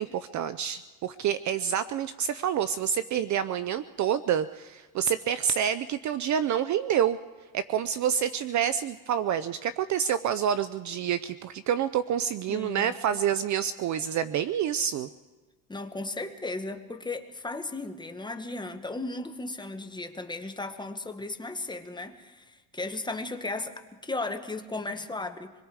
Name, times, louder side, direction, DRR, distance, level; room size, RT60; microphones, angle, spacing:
voice 1, 0.0-7.2 7.5-15.1, right 9 dB, 40° right, 15 dB, 0.5 m, -28 dB
voice 2, 12.5-13.2 15.7-25.5, left 2 dB, 10° left, 6 dB, 1.2 m, -36 dB
25.5 x 21.5 x 4.8 m, 1.3 s
cardioid pair, 120°, 45 cm